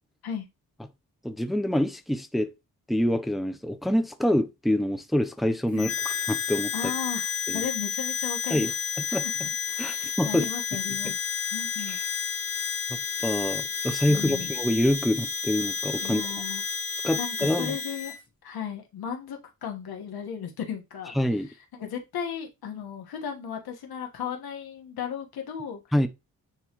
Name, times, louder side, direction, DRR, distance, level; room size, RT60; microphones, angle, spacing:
voice 1, 1.2-2.5 2.9-6.7 7.5-7.6 8.5-8.7 9.0-9.2 9.8-10.5 11.0-11.1 11.9-12.0 12.9-16.2 17.0-17.8 21.1-21.5 25.9-26.1, left 1 dB, ahead, 0.7 m, -26 dB
Harmonica, 5.8-18.2, left 6 dB, 40° left, 1.3 m, -31 dB
voice 2, 6.7-8.7 9.1-9.3 9.7-11.2 11.5-12.0 14.1-14.5 16.0-16.6 17.1-18.1 18.4-21.1 21.7-25.8, left 8 dB, 90° left, 1.6 m, -35 dB
9.7 x 3.2 x 3.1 m
cardioid pair, 75°, 36 cm